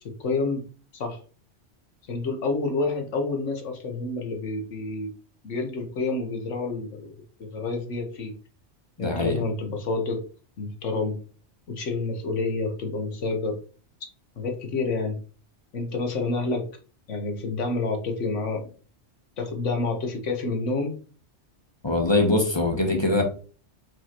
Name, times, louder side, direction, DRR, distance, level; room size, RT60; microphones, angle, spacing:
voice 1, 0.0-0.7 0.9-1.2 2.1-5.1 5.4-7.1 7.4-8.3 9.0-10.2 10.6-11.2 11.7-13.6 14.4-15.2 15.7-16.7 17.1-18.7 19.4-21.0, left 3 dB, 80° left, 4 dB, 1.4 m, -28 dB
voice 2, 9.0-9.4 21.8-23.2, left 2 dB, 25° left, 3 dB, 1.0 m, -22 dB
4.7 x 3.8 x 2.9 m, 0.39 s
omnidirectional pair, 1.2 m